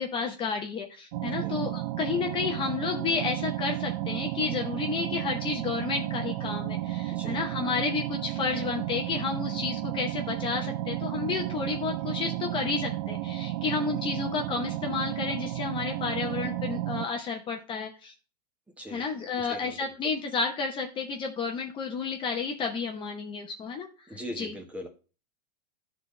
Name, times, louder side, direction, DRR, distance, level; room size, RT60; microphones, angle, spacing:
voice 1, 0.0-18.1 18.9-23.9 24.4-24.5, left 5 dB, 25° left, 3 dB, 0.8 m, -31 dB
sound 1, 1.1-17.1, right 15 dB, 55° right, 0.4 m, -33 dB
voice 2, 7.1-7.4 18.8-19.1 19.4-19.8 24.1-24.9, equal, 5° right, 3 dB, 1.2 m, -40 dB
12.5 x 4.1 x 3.2 m, 0.34 s
supercardioid pair, 140°, 21 cm